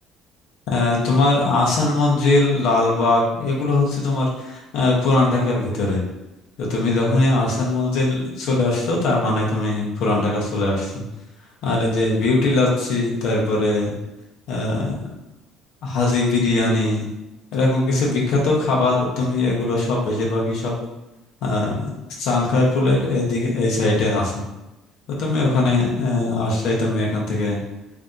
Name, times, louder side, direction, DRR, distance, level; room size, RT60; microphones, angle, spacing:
voice 1, 0.7-6.0 6.6-11.0 11.6-13.9 14.5-15.0 15.8-17.1 17.5-20.7 21.4-21.9 22.2-24.4 25.2-27.6, left 2 dB, 70° left, -3 dB, 0.9 m, -20 dB
3.3 x 2.7 x 3.8 m, 0.97 s
cardioid pair, 115°, 0 cm